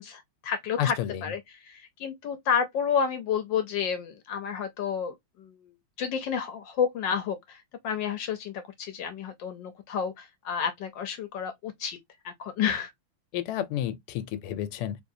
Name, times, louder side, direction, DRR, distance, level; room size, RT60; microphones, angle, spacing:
voice 1, 0.0-1.0 1.2-12.0 12.2-12.9, left 7 dB, 70° left, 1.2 m, -30 dB
voice 2, 0.8-1.2 13.3-15.0, left 11 dB, 90° left, 1.6 m, -30 dB
3.9 x 3.0 x 2.6 m
omnidirectional pair, 2.4 m